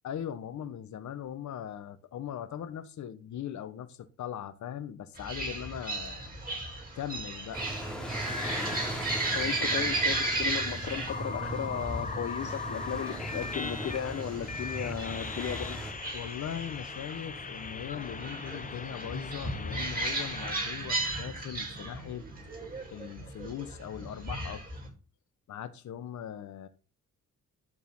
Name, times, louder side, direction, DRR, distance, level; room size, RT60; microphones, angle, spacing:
voice 1, 0.0-6.3 6.7-7.6 16.1-22.2 22.9-24.6 25.5-26.7, left 9 dB, 65° left, 1.4 m, -40 dB
sound 1, 5.1-24.9, right 2 dB, 30° right, 7.7 m, -35 dB
sound 2, 7.5-15.9, right 1 dB, 5° left, 3.9 m, -39 dB
sound 3, 8.1-9.0 9.9-20.5, left 4 dB, 25° left, 1.2 m, -40 dB
voice 2, 9.3-15.8, left 10 dB, 50° left, 0.9 m, -35 dB
12.0 x 6.9 x 5.7 m
cardioid pair, 105°, 31 cm